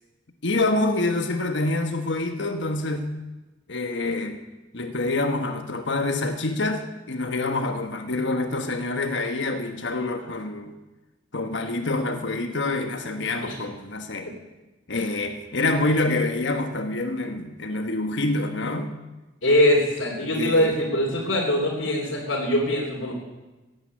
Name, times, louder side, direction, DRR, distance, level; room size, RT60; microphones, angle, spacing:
voice 1, 0.4-3.1 3.7-4.4 4.7-10.7 11.3-14.3 14.9-19.0 20.3-20.8, left 2 dB, 70° left, 6 dB, 1.3 m, -26 dB
voice 2, 19.4-23.1, left 1 dB, 85° left, -3 dB, 3.4 m, -22 dB
16.0 x 9.9 x 8.8 m, 1.1 s
head